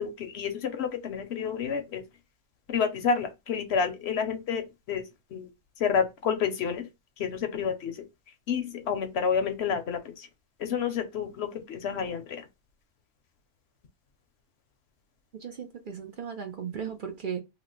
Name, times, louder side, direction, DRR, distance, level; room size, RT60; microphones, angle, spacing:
voice 1, 0.0-2.0 2.7-5.0 5.3-5.5 5.8-6.9 7.2-7.9 8.5-10.3 10.6-12.4, left 6 dB, 65° left, 0.8 m, -29 dB
voice 2, 15.4-17.4, right 7 dB, 55° right, 0.6 m, -36 dB
2.9 x 2.0 x 3.8 m
omnidirectional pair, 1.3 m